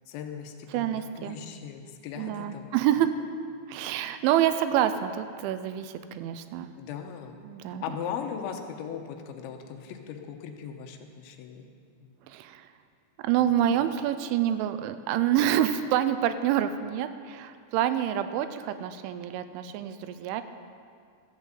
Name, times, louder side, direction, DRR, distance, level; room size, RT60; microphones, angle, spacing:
voice 1, 0.1-2.7 3.0-3.1 6.8-7.4 7.8-11.7 12.0-12.1 13.4-13.9, left 7 dB, 85° left, 5 dB, 3.1 m, -39 dB
voice 2, 0.7-1.4 2.2-3.1 3.7-6.7 7.4-7.8 12.3-12.7 13.2-20.4, right 11 dB, 85° right, 10 dB, 3.0 m, -27 dB
13.5 x 8.0 x 7.5 m, 2.2 s
omnidirectional pair, 5.4 m